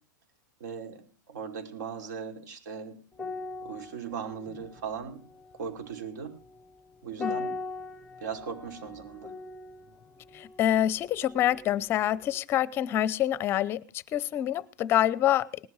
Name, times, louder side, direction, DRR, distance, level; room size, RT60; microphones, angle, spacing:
voice 1, 0.6-1.0 1.3-3.0 3.6-5.2 5.6-6.3 7.0-7.5 8.2-9.3, right 6 dB, 65° right, 5.2 m, -38 dB
sound 1, 3.1-11.9 12.2-12.4, left 3 dB, 5° left, 1.0 m, -41 dB
voice 2, 10.3-13.8 14.1-15.7, left 12 dB, 20° left, 0.7 m, -26 dB
19.0 x 12.0 x 4.8 m
supercardioid pair, 160°, 10 cm